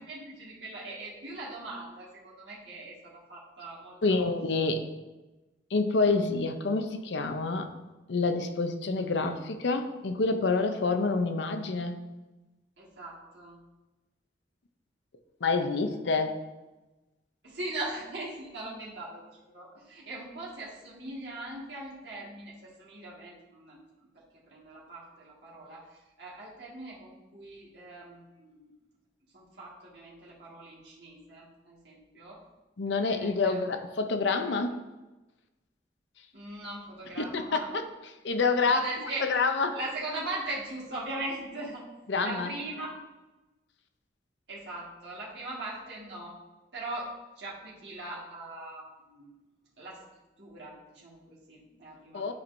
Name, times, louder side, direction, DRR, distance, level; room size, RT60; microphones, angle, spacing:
voice 1, 0.0-4.3 12.8-13.6 17.4-23.8 24.1-24.2 24.5-25.9 26.2-28.7 29.3-32.4 33.1-33.6 36.3-37.7 38.6-39.2 39.7-41.8 42.2-42.9 44.5-46.4 46.7-47.1 47.4-49.3 49.8-50.0 50.4-52.3, right 2 dB, 70° right, -6 dB, 1.8 m, -40 dB
voice 2, 4.0-4.9 5.7-7.7 8.1-12.0 15.4-16.4 32.8-34.8 37.2-39.8 42.1-42.5 52.1-52.3, left 3 dB, 80° left, 7 dB, 0.6 m, -28 dB
11.5 x 4.5 x 2.6 m, 1.1 s
head